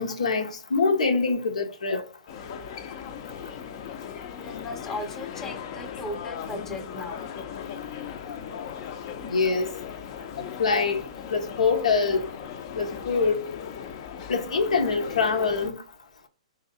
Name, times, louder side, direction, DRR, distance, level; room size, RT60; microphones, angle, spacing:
voice 1, 0.0-2.0 9.2-9.7 10.6-11.0 11.3-12.3 12.8-13.4 14.3-15.8, left 4 dB, 75° left, 0.8 m, -24 dB
sound 1, 2.3-15.7, left 8 dB, 45° left, 0.6 m, -38 dB
voice 2, 4.4-7.2, left 2 dB, 10° left, 0.8 m, -37 dB
3.2 x 2.7 x 4.1 m
hypercardioid pair, 120°, 4 cm